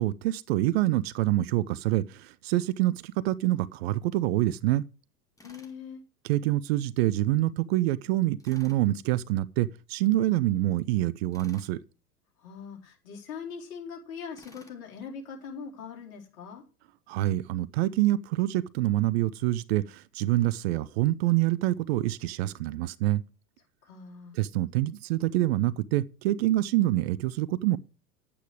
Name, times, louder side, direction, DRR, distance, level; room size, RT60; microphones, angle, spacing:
voice 1, 0.0-4.8 6.2-11.8 17.1-23.2 24.3-27.8, right 15 dB, 40° right, 0.5 m, -26 dB
voice 2, 5.4-6.0 12.4-16.6 23.8-24.4, left 6 dB, 60° left, 4.1 m, -41 dB
Tools, 5.4-5.8 8.4-8.8 11.3-11.8 14.4-14.8, left 1 dB, 5° left, 2.2 m, -54 dB
10.0 x 8.6 x 4.9 m
figure-of-eight pair, 90°, 48 cm